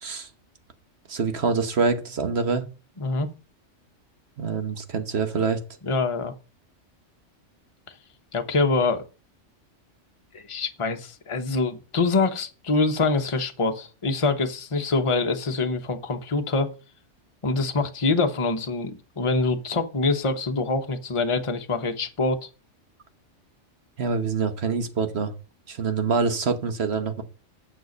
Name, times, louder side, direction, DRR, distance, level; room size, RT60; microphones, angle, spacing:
voice 1, 1.1-2.6 4.4-5.6 24.0-25.3 25.7-27.2, right 5 dB, 60° right, 1.4 m, -25 dB
voice 2, 3.0-3.3 5.8-6.3 8.3-9.0 10.3-16.7 17.4-22.5, left 3 dB, 30° left, 0.9 m, -25 dB
9.3 x 6.6 x 5.2 m
omnidirectional pair, 1.3 m